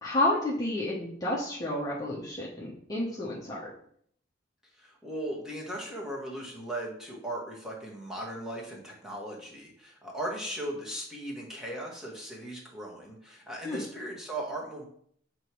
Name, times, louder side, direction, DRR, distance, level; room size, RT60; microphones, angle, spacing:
voice 1, 0.0-3.7 13.6-13.8, left 1 dB, 20° left, -5 dB, 1.0 m, -30 dB
voice 2, 4.8-14.8, right 1 dB, 5° right, -3 dB, 1.4 m, -38 dB
7.6 x 3.0 x 4.7 m, 0.63 s
head